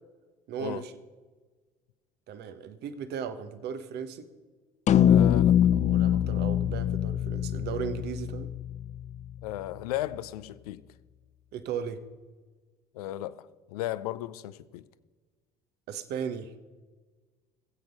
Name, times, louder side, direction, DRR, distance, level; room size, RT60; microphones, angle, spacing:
voice 1, 0.5-1.0 2.3-4.3 5.7-8.5 11.5-12.0 15.9-16.7, right 7 dB, 60° right, 1.2 m, -36 dB
sound 1, 4.9-9.3, left 10 dB, 40° left, 0.5 m, -24 dB
voice 2, 5.0-5.6 9.4-10.8 12.9-14.8, left 14 dB, 85° left, 0.6 m, -35 dB
19.5 x 7.9 x 5.4 m
hypercardioid pair, 70°, 19 cm